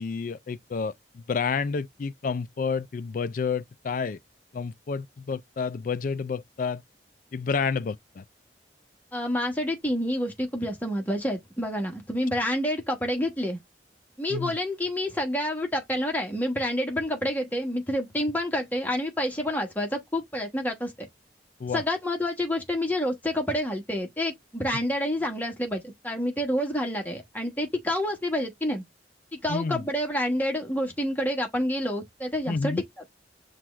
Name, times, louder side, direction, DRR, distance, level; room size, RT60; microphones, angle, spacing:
voice 1, 0.0-4.2 4.5-6.8 7.3-8.2 14.3-14.6 21.6-21.8 29.5-29.8 32.5-32.8, left 5 dB, 50° left, 0.4 m, -30 dB
voice 2, 9.1-13.6 14.2-21.1 21.7-28.8 29.3-32.8, left 1 dB, 10° left, 1.1 m, -28 dB
5.9 x 2.4 x 3.1 m
head